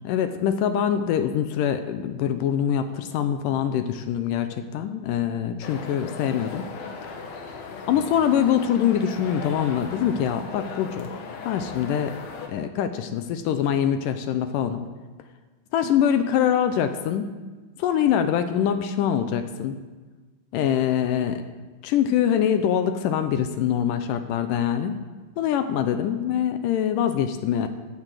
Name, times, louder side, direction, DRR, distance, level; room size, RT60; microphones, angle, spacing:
voice 1, 0.0-6.7 7.9-11.1 11.5-12.1 12.5-14.8 15.7-17.3 17.8-19.8 20.5-21.4 21.8-25.0 25.4-27.7, left 9 dB, 80° left, 9 dB, 2.0 m, -24 dB
sound 1, 5.6-12.5, left 4 dB, 60° left, 2.0 m, -37 dB
15.5 x 7.6 x 7.6 m, 1.3 s
omnidirectional pair, 4.4 m